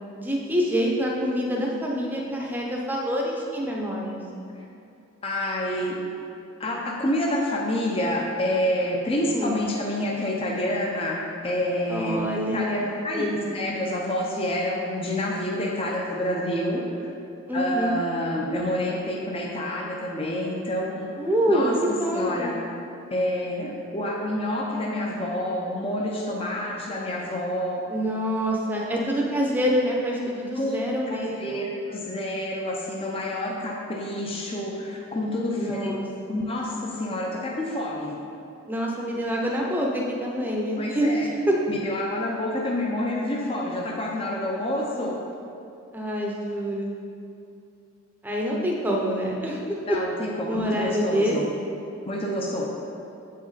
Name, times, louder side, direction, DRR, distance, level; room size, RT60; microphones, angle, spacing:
voice 1, 0.2-4.2 9.2-9.7 11.9-13.7 17.5-18.0 21.2-21.7 22.0-22.7 27.9-31.7 35.5-36.4 38.7-41.5 45.9-47.0 48.2-49.6 50.5-51.4, equal, 10° right, -2 dB, 0.7 m, -26 dB
voice 2, 5.2-6.0 6.6-12.3 12.5-17.1 17.5-21.1 21.5-21.7 22.1-22.6 23.1-27.9 30.6-36.0 36.3-38.2 40.8-41.3 41.7-45.2 49.9-51.5 52.1-52.7, left 1 dB, 25° left, -2 dB, 0.6 m, -28 dB
7.8 x 5.1 x 4.0 m, 2.6 s
head